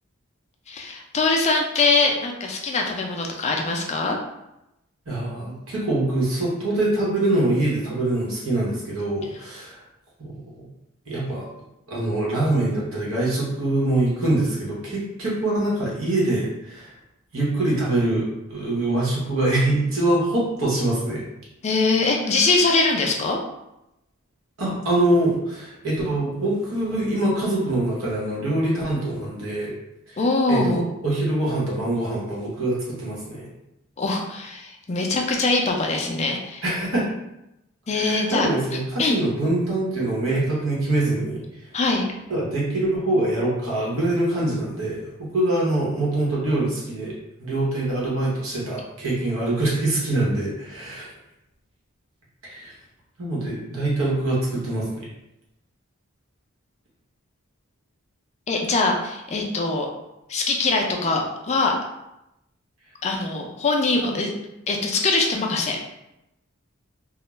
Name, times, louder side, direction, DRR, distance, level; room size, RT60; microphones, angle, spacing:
voice 1, 0.7-4.2 21.6-23.4 30.2-30.8 34.0-36.6 37.9-38.5 39.0-39.2 41.7-42.1 58.5-59.9 60.3-61.8 63.0-64.3 64.7-65.8, left 3 dB, 30° left, 1 dB, 0.4 m, -22 dB
voice 2, 5.1-9.8 10.2-10.6 11.1-11.5 11.9-16.9 17.3-21.2 24.6-29.7 30.1-30.2 30.5-33.5 36.6-37.1 37.9-41.4 42.3-47.1 47.4-51.1 52.4-52.7 53.2-55.0 64.0-64.2, right 1 dB, 75° right, -5 dB, 1.0 m, -24 dB
2.3 x 2.1 x 3.0 m, 0.89 s
head